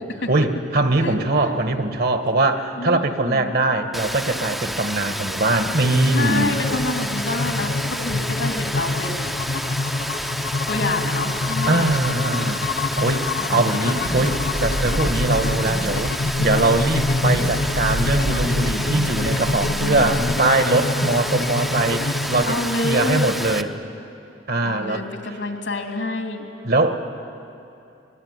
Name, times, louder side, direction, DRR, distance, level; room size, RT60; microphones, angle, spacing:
voice 1, 0.3-6.5 11.7-12.6 13.0-23.7 24.5-25.1 26.6-27.0, right 2 dB, 55° right, 7 dB, 1.5 m, -21 dB
voice 2, 1.0-1.5 2.8-3.5 6.1-9.3 10.7-12.0 13.4-14.3 19.6-20.3 22.4-23.3 24.6-26.5, left 2 dB, 80° left, 3 dB, 3.0 m, -28 dB
Rain, 3.9-23.6, equal, ahead, 0.7 m, -30 dB
sound 1, 5.8-22.4, left 3 dB, 55° left, 0.7 m, -26 dB
sound 2, 14.0-20.4, equal, 40° right, 1.2 m, -29 dB
26.0 x 20.5 x 9.6 m, 2.8 s
head